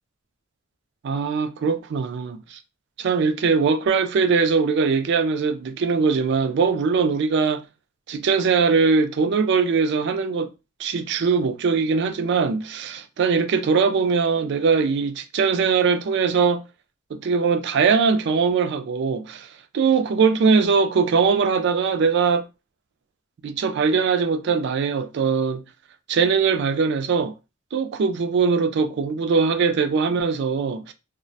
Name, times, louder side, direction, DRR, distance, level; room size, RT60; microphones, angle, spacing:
voice 1, 1.0-2.6 3.0-7.6 8.1-10.5 10.8-16.7 17.1-19.5 19.7-22.5 23.4-25.6 26.1-27.3 27.7-30.9, right 5 dB, 60° right, 0.3 m, -21 dB
2.3 x 2.1 x 2.6 m
head